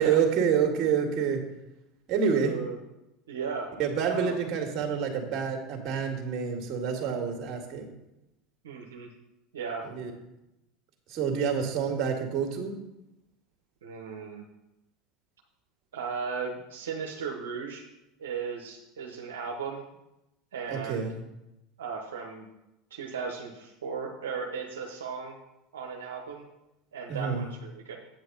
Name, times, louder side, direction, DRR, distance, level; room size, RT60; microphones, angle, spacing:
voice 1, 0.0-1.4 2.1-2.5 3.8-7.9 9.8-10.1 11.1-12.8 20.7-21.1 27.1-27.4, right 7 dB, 50° right, 3 dB, 2.1 m, -27 dB
voice 2, 2.3-2.8 3.3-3.7 4.0-4.4 8.6-9.1 9.5-9.9 13.8-14.4 15.9-17.8 18.2-19.9 20.5-21.1 21.8-22.5 22.9-25.3 25.7-26.4 26.9-28.0, right 5 dB, 85° right, 1 dB, 1.1 m, -36 dB
8.6 x 7.9 x 4.0 m, 0.91 s
hypercardioid pair, 85°, 0 cm